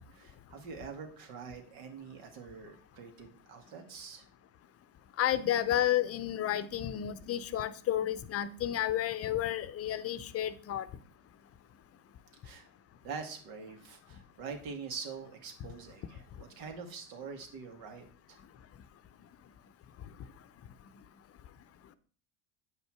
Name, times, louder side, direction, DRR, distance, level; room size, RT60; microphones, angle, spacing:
voice 1, 0.1-4.3 12.4-12.7 13.0-18.4, right 5 dB, 65° right, 2.2 m, -45 dB
voice 2, 5.2-10.9, left 11 dB, 40° left, 0.7 m, -31 dB
8.2 x 5.5 x 4.7 m
hypercardioid pair, 90°, 38 cm